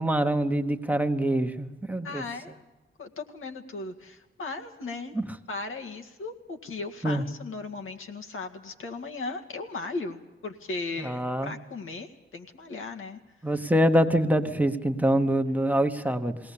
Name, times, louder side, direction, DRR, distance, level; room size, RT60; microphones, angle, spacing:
voice 1, 0.0-2.2 5.1-5.2 7.0-7.2 11.0-11.5 13.4-16.4, right 1 dB, 10° right, 6 dB, 1.1 m, -25 dB
voice 2, 2.0-2.6 3.0-5.1 5.5-13.2, left 3 dB, 85° left, 4 dB, 2.0 m, -37 dB
21.5 x 17.5 x 8.5 m, 1.1 s
wide cardioid pair, 150°, 21 cm